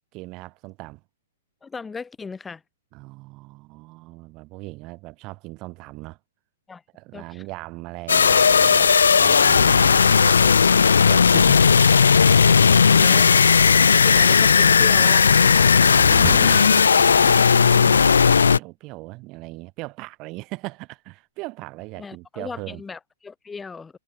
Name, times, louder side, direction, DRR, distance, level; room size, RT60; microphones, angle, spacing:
voice 1, 0.1-1.0 2.9-6.2 6.9-13.3 15.9-22.8, right 23 dB, 35° right, 3.6 m, -38 dB
voice 2, 1.6-2.6 6.7-6.8 7.1-7.4 13.0-13.4 14.0-15.9 16.4-16.7 22.0-24.0, left 5 dB, 10° left, 6.6 m, -37 dB
sound 1, 8.1-18.6, left 6 dB, 80° left, 0.6 m, -15 dB
sound 2, 16.2-17.9, right 3 dB, 5° right, 0.9 m, -36 dB
hypercardioid pair, 120°, 0 cm